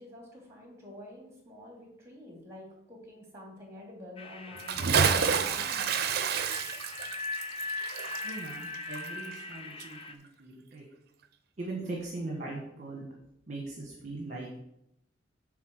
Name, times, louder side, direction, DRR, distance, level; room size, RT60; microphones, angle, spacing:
voice 1, 0.0-5.9, left 1 dB, 15° right, -1 dB, 2.7 m, -47 dB
sound 1, 4.2-10.1, left 2 dB, 30° left, 0.6 m, -40 dB
Bathtub (filling or washing) / Splash splatter, 4.6-9.5 9.8-9.9, right 6 dB, 55° right, 0.6 m, -29 dB
voice 2, 8.2-10.8 11.6-13.0 13.5-14.6, right 2 dB, 40° right, -1 dB, 1.3 m, -40 dB
8.4 x 3.7 x 6.5 m, 0.80 s
head